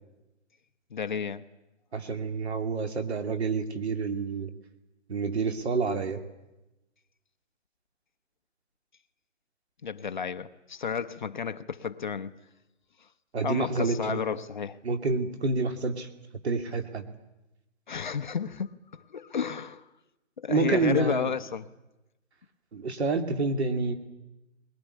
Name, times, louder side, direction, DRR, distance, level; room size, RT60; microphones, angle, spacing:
voice 1, 0.9-1.4 9.8-12.3 13.4-14.8 17.9-19.9 20.4-21.7, left 6 dB, 40° left, 10 dB, 0.8 m, -32 dB
voice 2, 1.9-4.5 5.1-6.2 13.3-14.2 14.8-16.1 16.4-17.1 20.5-21.3 22.7-23.9, right 4 dB, 60° right, 7 dB, 2.7 m, -28 dB
21.5 x 21.0 x 9.9 m, 0.99 s
hypercardioid pair, 170°, 37 cm